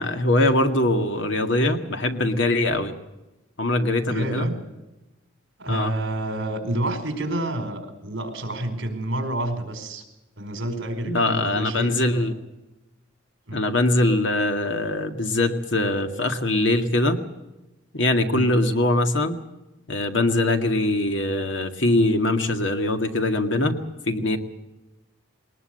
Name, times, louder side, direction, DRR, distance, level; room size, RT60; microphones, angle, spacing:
voice 1, 0.0-2.9 3.6-4.5 5.7-5.9 11.0-12.3 13.5-17.2 17.9-19.4 19.9-23.8 24.1-24.4, left 1 dB, 65° left, 6 dB, 2.1 m, -22 dB
voice 2, 4.0-4.6 5.6-10.0 10.4-12.2 13.5-13.6 18.3-18.5, right 1 dB, 60° right, 7 dB, 4.6 m, -29 dB
21.5 x 20.0 x 7.8 m, 0.98 s
head